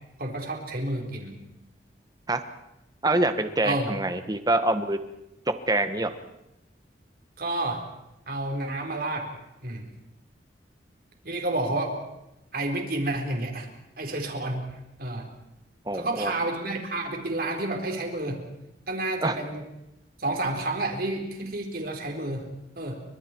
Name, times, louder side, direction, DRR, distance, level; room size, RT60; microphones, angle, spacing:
voice 1, 0.2-1.3 3.6-3.9 7.4-7.9 8.3-9.3 9.6-9.9 11.2-12.0 12.5-13.7 14.0-15.3 15.9-18.4 18.9-19.6 20.2-22.5 22.8-23.0, right 2 dB, 55° right, 2 dB, 4.4 m, -30 dB
voice 2, 3.0-5.0 5.7-6.1 15.9-16.3 19.2-19.3, right 2 dB, 20° right, 9 dB, 1.4 m, -25 dB
29.5 x 25.0 x 4.6 m, 0.90 s
head